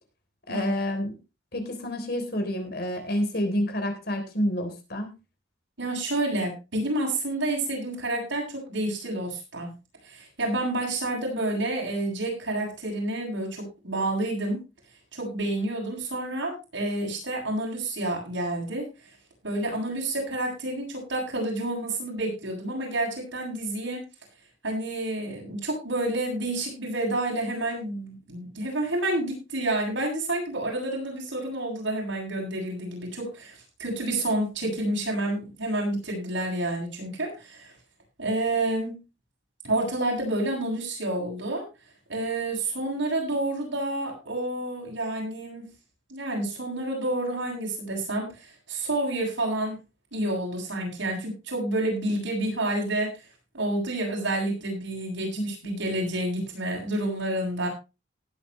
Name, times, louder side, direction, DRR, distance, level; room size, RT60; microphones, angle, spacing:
voice 1, 0.5-1.1 1.5-5.2, left 1 dB, 55° left, 5 dB, 3.5 m, -29 dB
voice 2, 5.8-9.7 10.0-14.6 15.1-18.8 19.4-24.0 24.6-37.7 38.2-38.9 39.6-41.6 42.1-45.6 46.1-49.8 50.1-53.1 53.5-57.7, right 1 dB, 85° right, -1 dB, 7.7 m, -29 dB
18.5 x 9.0 x 3.2 m, 0.29 s
head